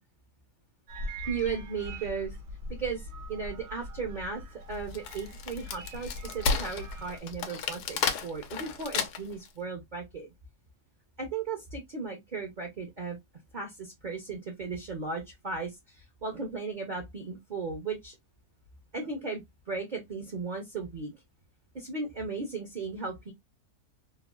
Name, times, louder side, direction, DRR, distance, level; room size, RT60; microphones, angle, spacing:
sound 1, 0.9-7.2, equal, 75° right, 1.4 m, -42 dB
voice 1, 1.3-2.4 2.7-4.4 4.7-10.3 11.2-13.2 13.5-18.2 18.9-21.1 21.7-23.3, right 4 dB, 50° right, 0.6 m, -36 dB
Wood, 4.7-9.5, left 5 dB, 90° left, 1.2 m, -32 dB
3.2 x 2.2 x 2.2 m
omnidirectional pair, 1.7 m